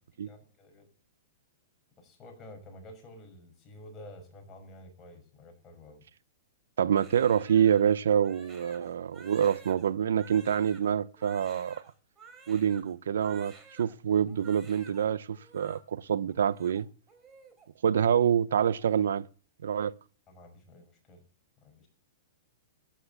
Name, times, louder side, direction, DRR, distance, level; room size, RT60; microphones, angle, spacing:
voice 1, 0.2-0.9 2.0-6.0 20.3-21.2 21.6-21.9, left 1 dB, 20° left, 6.0 m, -50 dB
voice 2, 6.8-11.8 12.5-16.9 17.8-19.3 19.6-19.9, right 8 dB, 85° right, 0.7 m, -26 dB
Crying sobbing, 6.9-13.9 14.3-15.0 15.3-15.8 16.3-17.7 17.9-18.2 18.5-19.0, right 4 dB, 20° right, 4.2 m, -53 dB
13.5 x 10.5 x 7.1 m
hypercardioid pair, 145°, 0 cm